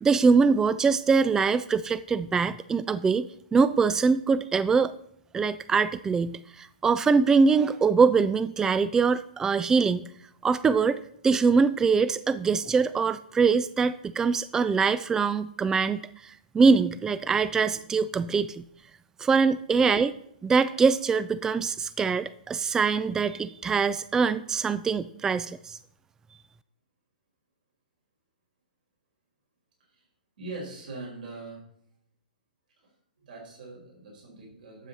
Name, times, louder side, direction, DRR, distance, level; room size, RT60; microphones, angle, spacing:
voice 1, 0.0-4.9 5.3-10.1 10.4-18.6 19.2-20.1 20.4-25.8, right 5 dB, 10° right, 15 dB, 0.3 m, -23 dB
voice 2, 30.4-31.6 32.8-34.9, right 3 dB, 65° right, -2 dB, 5.0 m, -42 dB
12.0 x 7.7 x 4.1 m, 0.69 s
figure-of-eight pair, 120°, 5 cm